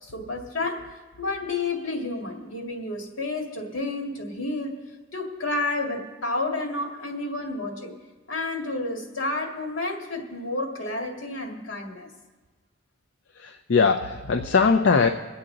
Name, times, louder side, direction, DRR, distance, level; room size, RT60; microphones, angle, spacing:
voice 1, 0.0-0.9 1.2-4.8 5.1-7.9 8.3-12.1, left 2 dB, 85° left, 1 dB, 1.9 m, -30 dB
voice 2, 13.4-15.1, left 5 dB, 65° left, 5 dB, 0.5 m, -20 dB
23.0 x 8.6 x 3.9 m, 1.3 s
head